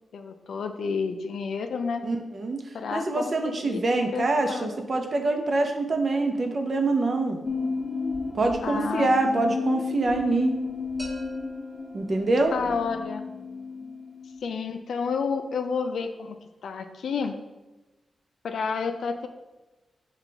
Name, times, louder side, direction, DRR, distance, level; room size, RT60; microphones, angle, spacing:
voice 1, 0.1-2.0 2.7-4.8 8.6-9.6 12.5-13.2 14.4-16.4 16.6-17.3 18.4-19.3, left 5 dB, 80° left, 7 dB, 0.4 m, -30 dB
voice 2, 2.0-2.6 2.9-7.4 8.3-10.6 11.9-12.6, right 2 dB, 50° right, 4 dB, 0.6 m, -25 dB
sound 1, 7.4-14.4, left 4 dB, 30° left, 0.7 m, -32 dB
sound 2, 11.0-12.8, right 2 dB, 30° right, 1.1 m, -44 dB
5.8 x 2.4 x 3.3 m, 1.1 s
cardioid pair, 60°, 0 cm